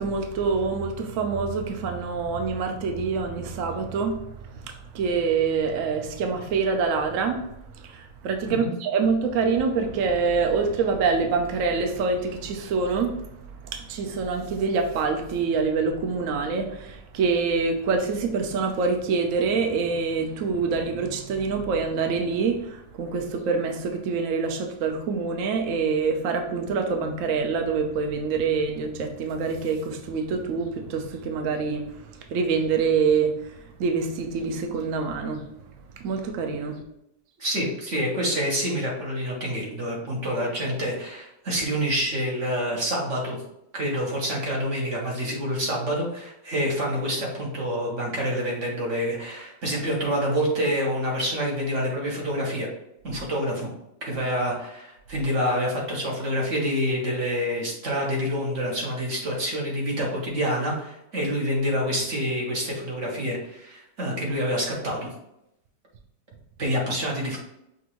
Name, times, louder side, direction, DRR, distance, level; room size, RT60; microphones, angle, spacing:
voice 1, 0.0-7.4 7.7-13.2 13.6-35.4 36.0-36.8, right 5 dB, 65° right, 4 dB, 0.8 m, -26 dB
voice 2, 37.4-43.4 43.7-52.7 53.0-53.7 54.0-65.1 66.6-67.4, equal, 45° right, -2 dB, 1.4 m, -27 dB
5.9 x 2.6 x 3.0 m, 0.82 s
omnidirectional pair, 1.9 m